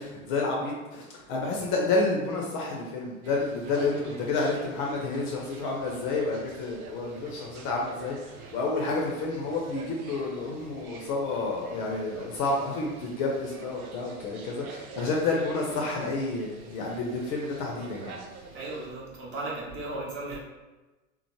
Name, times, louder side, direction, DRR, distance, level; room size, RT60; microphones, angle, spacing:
voice 1, 0.0-18.2, left 3 dB, 35° left, -1 dB, 0.5 m, -30 dB
sound 1, 3.2-18.9, right 5 dB, 80° right, 0.5 m, -46 dB
voice 2, 18.5-20.4, right 2 dB, 30° right, -4 dB, 0.8 m, -36 dB
3.0 x 2.0 x 2.9 m, 1.1 s
hypercardioid pair, 95°, 42 cm